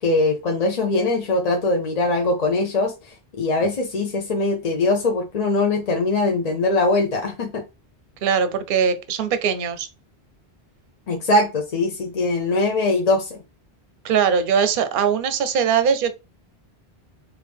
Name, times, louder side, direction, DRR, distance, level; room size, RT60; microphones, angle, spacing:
voice 1, 0.0-7.6 11.1-13.4, left 2 dB, 45° left, 0.6 m, -21 dB
voice 2, 8.2-9.9 14.0-16.1, right 7 dB, 60° right, 0.7 m, -21 dB
4.6 x 2.5 x 3.4 m
omnidirectional pair, 1.1 m